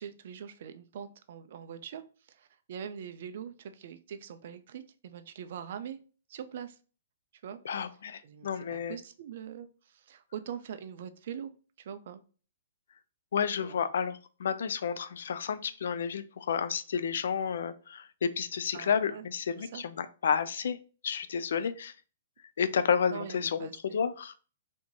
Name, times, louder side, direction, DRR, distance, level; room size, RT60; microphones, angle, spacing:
voice 1, 0.0-2.0 2.3-6.0 6.3-6.8 7.4-7.6 8.2-11.5 11.8-12.2 13.6-13.8 18.7-19.3 19.6-19.8 23.1-24.0, right 8 dB, 50° right, 10 dB, 0.5 m, -43 dB
voice 2, 7.6-9.0 13.3-20.8 21.0-21.9 22.6-24.3, left 7 dB, 70° left, 13 dB, 0.5 m, -31 dB
4.3 x 2.8 x 2.9 m, 0.37 s
hypercardioid pair, 165°, 0 cm